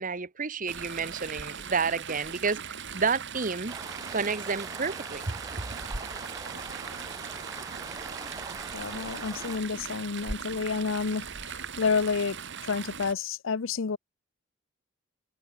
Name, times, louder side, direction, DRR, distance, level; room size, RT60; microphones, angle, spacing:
voice 1, 0.0-3.8 4.1-5.4, right 5 dB, 40° right, 1.1 m, -30 dB
Chatter / Stream, 0.7-13.1, right 6 dB, 60° right, 2.8 m, -39 dB
sound 1, 3.7-9.6, right 3 dB, 15° right, 1.9 m, -42 dB
voice 2, 8.7-14.0, left 5 dB, 65° left, 0.6 m, -30 dB
head